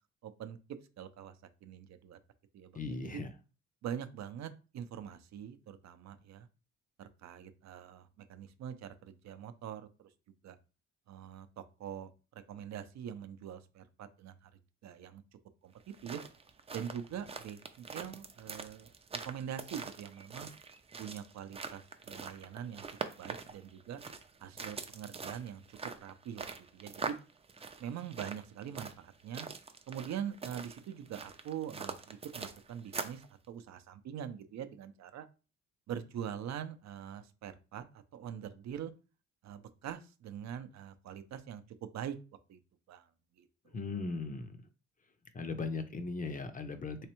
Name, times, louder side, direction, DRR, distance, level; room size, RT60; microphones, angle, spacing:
voice 1, 0.2-1.3 1.6-2.2 2.5-3.2 3.8-6.5 7.0-9.9 10.4-10.6 11.1-12.1 12.5-14.5 14.8-15.2 15.6-15.7 16.0-16.2 16.7-18.9 19.2-20.5 21.0-22.9 23.2-24.0 24.4-27.2 27.8-29.5 29.9-35.3 35.9-38.9 39.4-42.2 42.5-42.6 42.9-43.1 43.4-43.8, right 9 dB, 65° right, 10 dB, 0.6 m, -43 dB
voice 2, 2.7-3.3 43.7-44.6 45.3-47.1, left 3 dB, 25° left, 8 dB, 0.6 m, -38 dB
sound 1, 15.8-33.3, right 4 dB, 20° right, 0.4 m, -44 dB
3.3 x 3.2 x 3.0 m, 0.32 s
cardioid pair, 90°, 30 cm